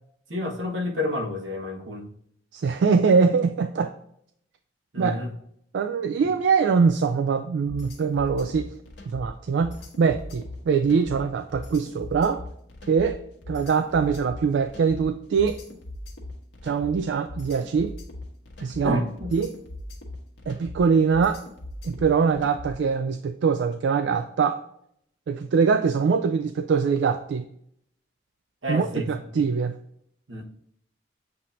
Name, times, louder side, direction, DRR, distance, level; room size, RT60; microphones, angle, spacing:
voice 1, 0.3-2.1 4.9-5.3 18.8-19.3 28.6-29.1 29.3-29.4 30.3-30.4, left 1 dB, 90° right, 2 dB, 1.1 m, -29 dB
voice 2, 2.5-3.9 5.0-5.2 5.7-8.7 9.1-12.4 12.9-13.2 13.5-15.6 16.6-17.9 18.6-19.0 19.3-19.5 20.5-21.4 21.8-24.6 25.3-27.4 28.7-29.7, right 5 dB, 70° right, 8 dB, 0.3 m, -23 dB
sound 1, 7.7-22.9, left 1 dB, 70° left, 1.1 m, -40 dB
7.5 x 2.8 x 2.5 m, 0.70 s
head